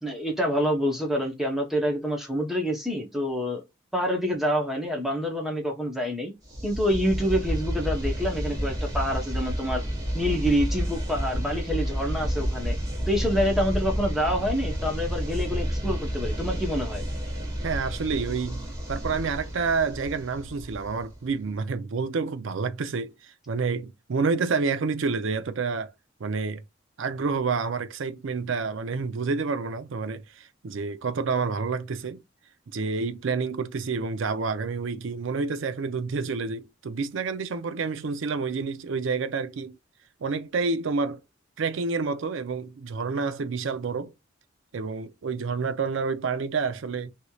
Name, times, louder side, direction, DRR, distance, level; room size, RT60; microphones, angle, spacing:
voice 1, 0.0-3.6 3.9-6.3 6.6-9.8 10.1-12.8 13.1-17.0, equal, ahead, 0.7 m, -27 dB
sound 1, 6.5-21.3, equal, 20° right, 1.1 m, -30 dB
voice 2, 17.6-25.9 26.2-26.6 27.0-32.2 32.7-39.7 40.2-41.2 41.6-44.1 44.7-47.1, right 4 dB, 75° right, 0.5 m, -29 dB
3.0 x 2.8 x 2.3 m
head